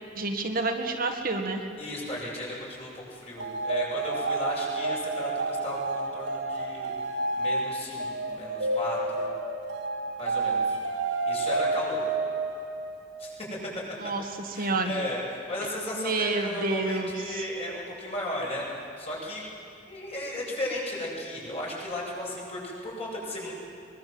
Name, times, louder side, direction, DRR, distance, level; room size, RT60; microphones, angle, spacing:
voice 1, 0.2-1.6 14.0-14.9 15.9-17.4, right 3 dB, 50° right, 3 dB, 1.8 m, -29 dB
voice 2, 1.8-6.9 7.3-9.3 10.2-10.8 11.2-12.0 13.2-13.6 14.5-18.7 19.0-19.4 19.9-23.5, left 1 dB, 35° left, -4 dB, 7.8 m, -35 dB
sound 1, 3.4-13.1, right 3 dB, 75° right, 2.3 m, -30 dB
23.0 x 22.5 x 7.8 m, 2.6 s
head